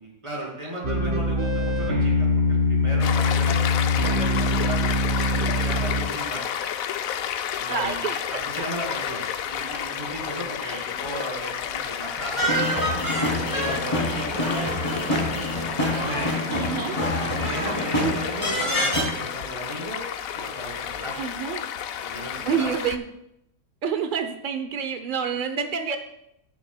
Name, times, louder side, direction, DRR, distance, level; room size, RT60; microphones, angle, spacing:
voice 1, 0.0-6.6 7.5-12.7 13.1-15.5 15.8-16.4 17.2-20.1 20.3-21.1 21.9-22.7, right 1 dB, 20° right, -4 dB, 3.2 m, -35 dB
sound 1, 0.8-6.0, left 2 dB, 40° right, 1.7 m, -23 dB
Stream, 3.0-23.0, left 9 dB, 70° left, 0.9 m, -31 dB
voice 2, 7.7-8.6 10.6-10.9 16.5-17.0 18.0-18.2 21.2-21.6 22.5-23.0 23.8-26.0, right 7 dB, 85° right, 8 dB, 0.4 m, -28 dB
sound 2, 12.4-19.0, equal, 20° left, 2.6 m, -26 dB
20.5 x 7.0 x 2.2 m, 0.80 s
omnidirectional pair, 1.7 m